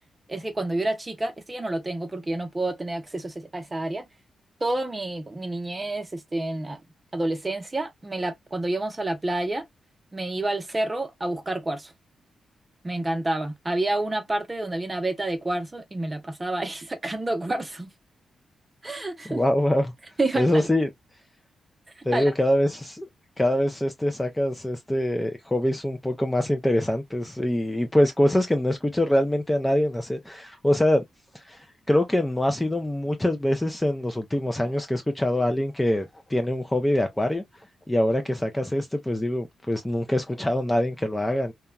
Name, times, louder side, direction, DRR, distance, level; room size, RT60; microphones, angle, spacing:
voice 1, 0.3-4.1 4.6-6.8 7.1-9.6 10.1-11.9 12.8-17.9 18.8-19.4 20.2-20.7 22.0-22.3, right 2 dB, 20° right, 0.7 m, -29 dB
voice 2, 19.3-19.9 20.4-20.9 22.1-23.1 23.4-31.0 31.3-37.4 37.9-41.5, left 1 dB, 10° left, 0.4 m, -24 dB
2.9 x 2.2 x 2.3 m
cardioid pair, 110°, 0 cm